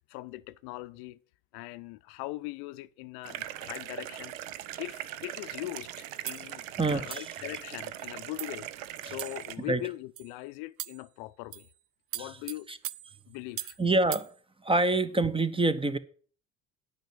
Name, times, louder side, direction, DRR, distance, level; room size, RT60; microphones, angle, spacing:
voice 1, 0.1-1.2 1.5-4.3 4.8-6.6 6.9-11.7 12.1-12.7 13.3-13.8, left 19 dB, 70° left, 0.6 m, -41 dB
sound 1, 3.2-9.6, right 13 dB, 80° right, 0.8 m, -40 dB
sound 2, 6.3-6.5 7.1-7.4 8.0-8.1 8.4-8.6 9.2-9.6 10.2-10.3 10.8-11.1 11.5-11.7 12.1-13.8 14.1-14.3, right 13 dB, 35° right, 0.4 m, -40 dB
voice 2, 6.8-7.3 9.0-9.1 9.7-9.8 12.2-12.3 12.7-12.8 13.8-14.3 14.6-16.0, right 2 dB, 15° right, 0.9 m, -26 dB
9.1 x 6.0 x 7.3 m
hypercardioid pair, 65°, 40 cm